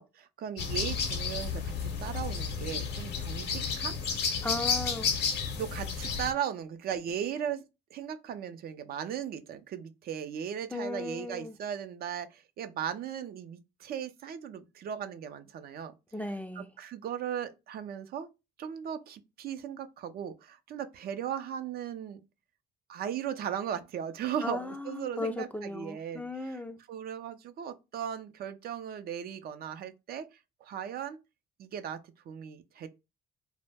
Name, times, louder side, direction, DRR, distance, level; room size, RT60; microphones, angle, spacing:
voice 1, 0.0-4.0 5.5-7.6 7.9-15.9 16.6-18.3 18.6-22.2 22.9-26.6 26.9-30.3 30.6-31.2 31.6-32.0 32.3-32.9, right 9 dB, 60° right, 0.4 m, -37 dB
sound 1, 0.6-6.3, left 6 dB, 70° left, 0.7 m, -32 dB
voice 2, 4.4-5.1 10.7-11.6 16.1-16.7 24.4-26.8, left 2 dB, 10° left, 0.3 m, -36 dB
2.1 x 2.0 x 3.2 m
cardioid pair, 90°, 18 cm